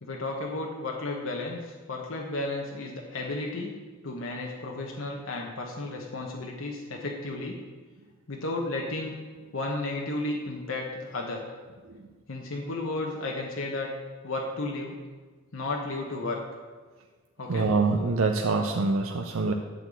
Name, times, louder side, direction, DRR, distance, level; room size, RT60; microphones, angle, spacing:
voice 1, 0.0-3.8 4.0-7.6 8.3-9.1 9.5-11.4 12.3-13.9 14.2-15.0 15.5-16.4 17.4-17.7, left 2 dB, 70° left, 0 dB, 1.1 m, -33 dB
voice 2, 17.5-19.5, right 3 dB, 75° right, 4 dB, 0.6 m, -25 dB
11.5 x 4.0 x 7.5 m, 1.4 s
head